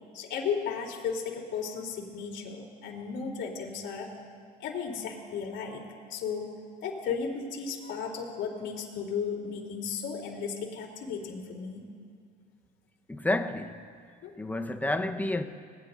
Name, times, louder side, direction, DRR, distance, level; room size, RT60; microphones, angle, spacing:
voice 1, 0.1-4.1 4.6-5.8 6.1-6.5 6.8-11.9 14.2-14.3, left 6 dB, 60° left, 3.4 m, -35 dB
voice 2, 13.1-13.9 14.4-15.4, left 2 dB, 10° left, 1.1 m, -30 dB
26.5 x 19.5 x 2.7 m
supercardioid pair, 90°, 21 cm